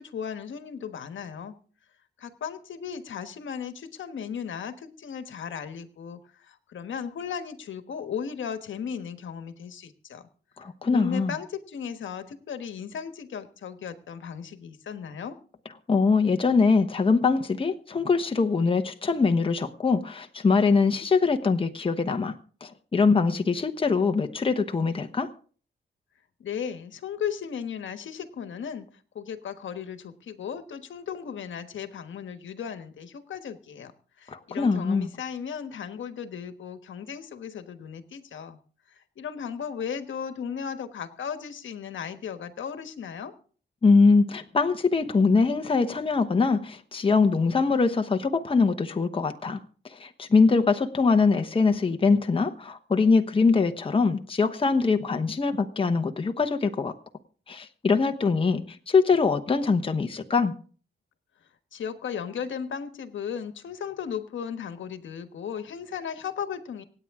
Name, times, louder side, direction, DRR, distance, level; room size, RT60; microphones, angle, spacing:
voice 1, 0.0-1.5 2.2-6.2 6.5-10.2 10.9-15.4 26.4-28.9 29.1-33.9 34.2-38.6 38.9-43.3 61.7-66.8, left 7 dB, 80° left, 1.3 m, -36 dB
voice 2, 10.6-11.3 15.9-22.3 22.6-25.3 34.3-35.1 43.8-49.6 49.9-56.9 57.5-60.5, left 4 dB, 30° left, 1.1 m, -23 dB
25.5 x 8.9 x 3.6 m
wide cardioid pair, 120°, 20 cm